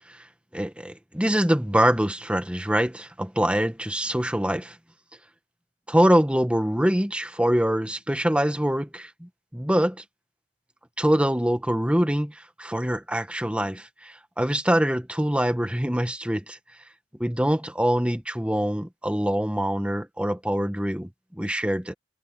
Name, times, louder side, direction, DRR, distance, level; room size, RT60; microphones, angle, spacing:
voice 1, 0.5-4.8 5.9-10.0 11.0-16.6 17.2-21.9, equal, 5° right, 1.5 m, -24 dB
head